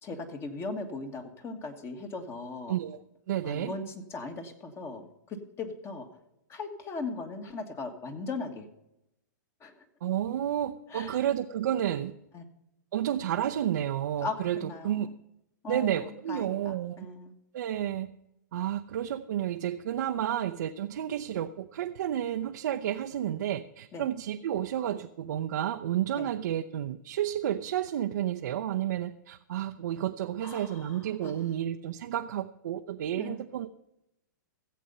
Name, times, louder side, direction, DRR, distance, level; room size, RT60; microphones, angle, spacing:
voice 1, 0.0-2.8 3.4-6.1 6.5-8.7 9.6-9.8 10.9-11.2 12.3-12.5 14.2-15.1 15.6-17.3 23.9-24.1 26.1-26.3 30.4-31.4 33.2-33.4, left 3 dB, 25° left, 7 dB, 1.6 m, -39 dB
voice 2, 3.3-3.7 10.0-12.1 12.9-15.1 15.7-17.1 17.5-18.1 18.5-33.7, right 11 dB, 65° right, 5 dB, 0.6 m, -31 dB
16.0 x 7.7 x 5.4 m, 0.85 s
hypercardioid pair, 125°, 10 cm